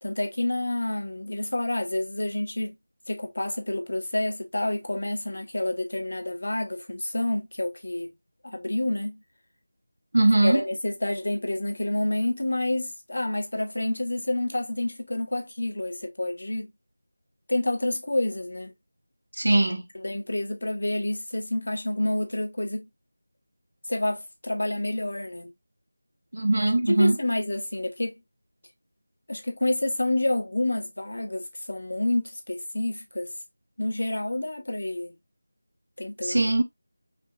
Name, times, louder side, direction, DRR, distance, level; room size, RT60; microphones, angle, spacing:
voice 1, 0.0-2.7 3.1-8.1 8.4-9.2 10.4-16.7 17.5-18.7 19.9-22.9 23.9-25.5 26.6-28.2 29.3-33.3 33.8-35.1 36.0-36.5, left 1 dB, 55° left, 1.2 m, -28 dB
voice 2, 10.1-10.6 19.4-19.8 26.3-27.2 36.2-36.6, right 2 dB, 55° right, 0.9 m, -21 dB
5.1 x 3.0 x 2.3 m
figure-of-eight pair, 180°, 0 cm